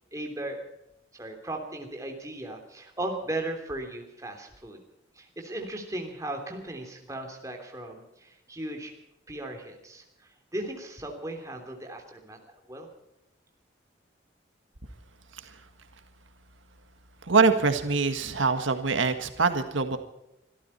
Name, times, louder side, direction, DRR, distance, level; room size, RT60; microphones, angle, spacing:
voice 1, 0.1-0.7 1.1-4.8 5.1-8.9 9.3-12.4 12.7-12.9, right 1 dB, 15° right, 3 dB, 3.1 m, -37 dB
voice 2, 17.3-20.0, right 4 dB, 85° right, 8 dB, 1.7 m, -24 dB
25.5 x 13.0 x 4.3 m, 0.86 s
head